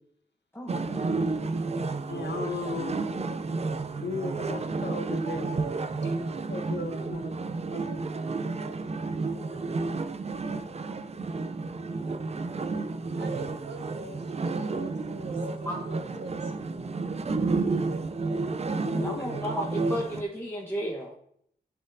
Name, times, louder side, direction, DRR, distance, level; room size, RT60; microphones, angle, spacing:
voice 1, 0.5-1.2 9.5-9.6 15.3-15.4 15.6-15.8 19.0-21.1, equal, 15° left, -2 dB, 0.9 m, -34 dB
sound 1, 0.7-20.2, right 3 dB, 40° right, 0.4 m, -31 dB
voice 2, 2.0-3.2 3.9-5.5 6.5-7.4 7.7-8.1 16.8-16.9 17.7-17.9 18.7-19.4, left 3 dB, 80° left, 2 dB, 1.3 m, -36 dB
voice 3, 13.1-16.6, right 2 dB, 85° right, 6 dB, 0.8 m, -41 dB
12.0 x 4.3 x 2.6 m, 0.67 s
wide cardioid pair, 125°, 17 cm